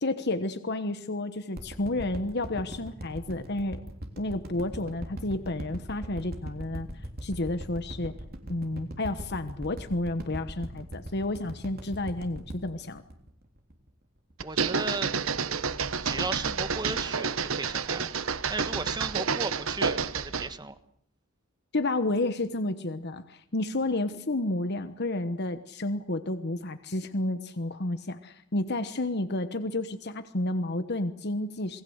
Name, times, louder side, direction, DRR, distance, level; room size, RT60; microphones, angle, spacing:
voice 1, 0.0-3.8 4.2-6.9 7.2-8.1 8.5-13.0 21.7-31.8, left 2 dB, 50° left, 10 dB, 1.2 m, -31 dB
sound 1, 1.6-13.9 14.3-14.4, right 1 dB, 45° right, 3.5 m, -40 dB
voice 2, 14.4-15.1 15.5-18.1 18.5-20.8, right 3 dB, 20° right, 11 dB, 1.3 m, -36 dB
sound 2, 14.4-20.5, right 5 dB, 70° right, 1.2 m, -29 dB
28.0 x 20.0 x 8.0 m, 0.70 s
head